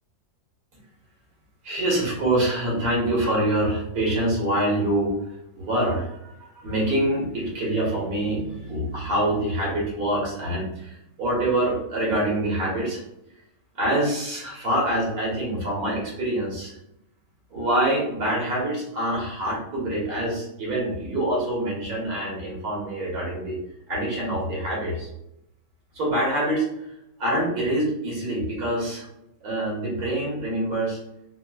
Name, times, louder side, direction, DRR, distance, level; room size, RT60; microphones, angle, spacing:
voice 1, 1.6-5.1 5.5-6.3 6.6-13.0 13.7-16.8 17.5-23.6 23.9-25.1 25.9-26.6 27.2-29.0 29.4-31.0, right 1 dB, 75° right, -5 dB, 1.6 m, -25 dB
4.1 x 2.0 x 2.3 m, 0.83 s
omnidirectional pair, 1.6 m